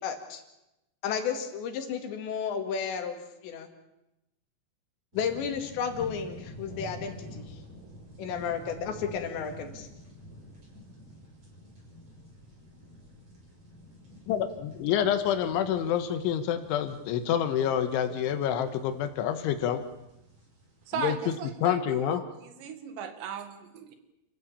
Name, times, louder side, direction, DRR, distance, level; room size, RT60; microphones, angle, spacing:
voice 1, 0.0-0.4 1.0-3.2 3.4-3.7 5.1-7.6 8.2-9.9, left 7 dB, 70° left, 6 dB, 4.4 m, -32 dB
sound 1, 5.1-21.3, equal, 35° right, 6.9 m, -48 dB
voice 2, 14.3-19.8 21.0-21.2 21.6-22.2, left 9 dB, 90° left, 9 dB, 3.8 m, -27 dB
voice 3, 20.9-24.0, right 7 dB, 70° right, 8 dB, 4.1 m, -37 dB
29.0 x 15.0 x 8.8 m, 0.92 s
omnidirectional pair, 5.3 m